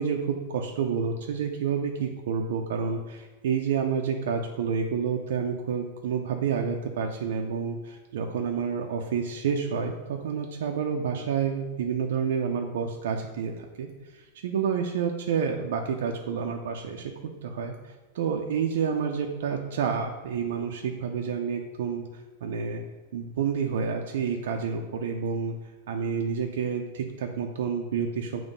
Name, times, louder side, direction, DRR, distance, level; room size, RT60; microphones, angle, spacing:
voice 1, 0.0-17.1 17.4-22.0 22.4-22.8 23.1-25.6 25.9-28.4, right 6 dB, 75° right, 2 dB, 0.6 m, -29 dB
7.0 x 3.1 x 5.3 m, 1.2 s
supercardioid pair, 165°, 0 cm